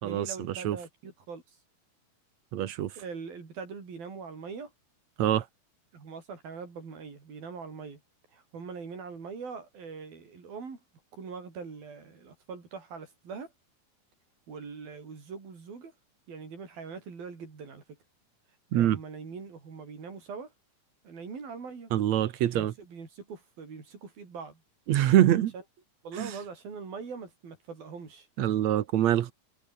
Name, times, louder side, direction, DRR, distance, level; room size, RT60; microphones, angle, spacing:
voice 1, 0.0-1.4 3.0-4.7 5.9-8.0 8.3-10.8 11.1-13.5 14.5-15.9 16.3-18.0 18.7-20.5 21.0-21.9 22.5-24.6 26.0-28.3, right 5 dB, 90° right, 7.4 m, -42 dB
voice 2, 2.5-2.9 5.2-5.4 18.7-19.0 21.9-22.7 24.9-25.5 26.2-26.3 28.4-29.3, right 12 dB, 65° right, 2.1 m, -24 dB
omnidirectional pair, 4.1 m